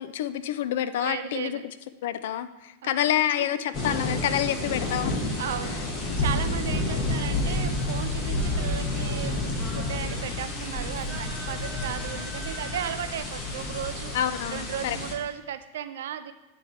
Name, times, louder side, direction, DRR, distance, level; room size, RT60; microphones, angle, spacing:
voice 1, 0.0-1.6 2.0-5.2 14.1-15.0, left 11 dB, 55° left, 12 dB, 0.3 m, -28 dB
voice 2, 1.0-1.6 2.8-3.5 5.4-9.4 9.7-14.2 14.5-16.3, right 9 dB, 60° right, 10 dB, 0.4 m, -35 dB
sound 1, 3.7-15.1, left 2 dB, 35° left, 1.1 m, -30 dB
Singing, 7.8-13.0, right 2 dB, 15° right, 0.9 m, -44 dB
9.1 x 4.3 x 3.3 m, 1.0 s
figure-of-eight pair, 90°, 0 cm